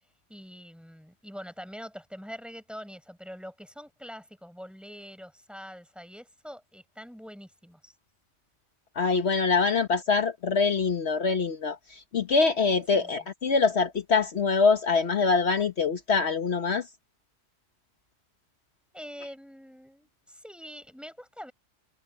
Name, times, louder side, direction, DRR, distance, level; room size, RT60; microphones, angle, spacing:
voice 1, 0.3-7.9 9.4-9.5 12.9-13.3 18.9-21.5, equal, ahead, 5.1 m, -44 dB
voice 2, 8.9-16.9, left 4 dB, 65° left, 1.5 m, -24 dB
omnidirectional pair, 1.2 m